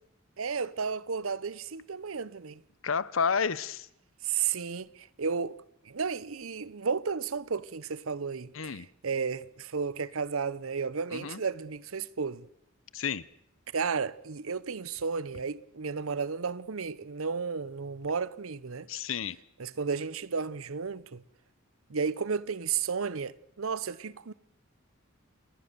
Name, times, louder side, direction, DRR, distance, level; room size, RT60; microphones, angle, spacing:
voice 1, 0.4-2.6 4.2-5.6 5.9-12.5 13.7-18.9 19.6-21.2 21.9-24.3, right 5 dB, 90° right, 0.8 m, -33 dB
voice 2, 2.8-3.9 8.5-8.9 11.1-11.4 12.9-13.2 18.9-19.4, left 6 dB, 70° left, 0.8 m, -30 dB
29.0 x 19.0 x 6.8 m
head